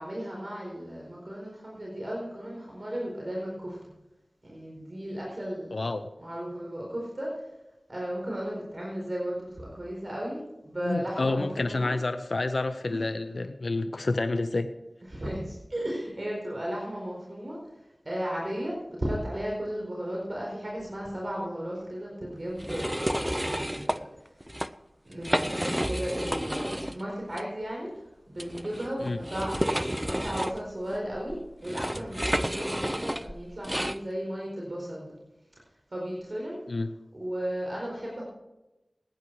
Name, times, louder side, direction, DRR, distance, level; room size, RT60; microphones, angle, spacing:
voice 1, 0.0-3.8 4.4-5.7 6.2-7.3 7.9-10.4 10.6-11.9 12.9-13.0 15.1-17.6 18.0-24.0 25.0-25.5 25.8-27.9 28.3-35.1 35.9-36.6 37.1-38.2, equal, 50° right, -3 dB, 4.4 m, -35 dB
voice 2, 5.7-6.0 10.8-14.7 29.0-29.2 36.7-36.9, left 2 dB, 75° left, 9 dB, 0.6 m, -29 dB
sound 1, 22.6-24.0 24.4-24.7 25.1-27.0 27.3-27.4 28.4-34.0, equal, 10° right, 0.5 m, -30 dB
18.0 x 9.8 x 4.7 m, 0.97 s
wide cardioid pair, 50°, 0 cm